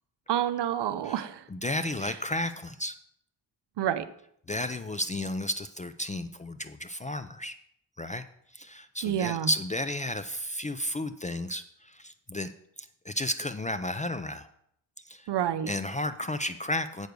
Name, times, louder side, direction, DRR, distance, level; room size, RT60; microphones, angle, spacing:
voice 1, 0.3-1.5 2.0-2.1 3.8-4.1 9.0-9.5 15.3-15.7, right 10 dB, 65° right, 13 dB, 0.7 m, -28 dB
voice 2, 1.5-2.9 4.5-7.5 8.0-8.2 8.5-12.5 12.8-14.5 15.0-15.3 15.7-17.1, left 1 dB, 20° left, 11 dB, 0.4 m, -33 dB
8.0 x 6.6 x 5.2 m, 0.71 s
cardioid pair, 95°, 45 cm